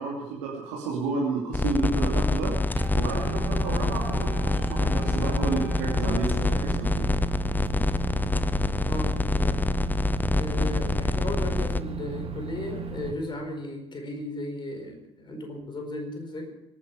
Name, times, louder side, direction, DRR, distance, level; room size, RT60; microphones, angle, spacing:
voice 1, 0.0-2.6 2.9-7.1 10.1-10.2, right 4 dB, 70° right, -4 dB, 2.7 m, -31 dB
sound 1, 1.5-11.8, left 2 dB, 10° left, 0.7 m, -26 dB
Wind instrument woodwind instrument, 2.7-6.5, right 4 dB, 10° right, 4.3 m, -46 dB
Microwave oven, 2.8-13.1, right 4 dB, 40° right, 2.2 m, -35 dB
voice 2, 8.9-9.7 10.3-16.5, left 1 dB, 30° left, 4 dB, 4.7 m, -35 dB
24.5 x 10.0 x 5.0 m, 0.90 s
figure-of-eight pair, 50°, 15 cm